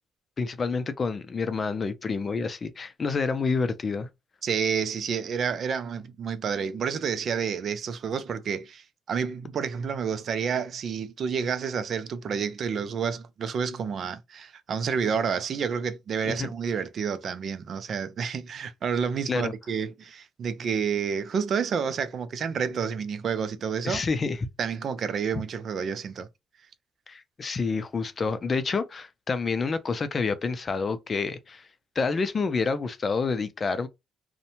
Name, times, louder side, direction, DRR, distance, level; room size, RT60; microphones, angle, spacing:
voice 1, 0.4-4.1 16.3-16.5 19.3-19.5 23.8-24.4 25.3-25.4 27.1-31.6 32.0-33.9, left 4 dB, 40° left, 0.4 m, -28 dB
voice 2, 4.4-24.0 24.6-26.3, right 6 dB, 60° right, 0.4 m, -29 dB
2.6 x 2.1 x 2.8 m
cardioid pair, 90°, 0 cm